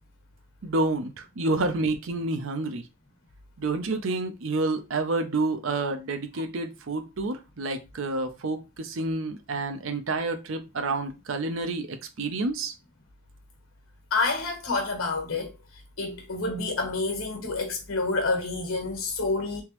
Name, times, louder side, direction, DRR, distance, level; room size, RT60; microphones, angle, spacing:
voice 1, 0.6-2.8 3.6-12.7, right 2 dB, 75° right, 0.6 m, -29 dB
voice 2, 14.1-15.5 16.0-19.6, left 3 dB, 90° left, 1.3 m, -28 dB
3.5 x 2.9 x 3.0 m
head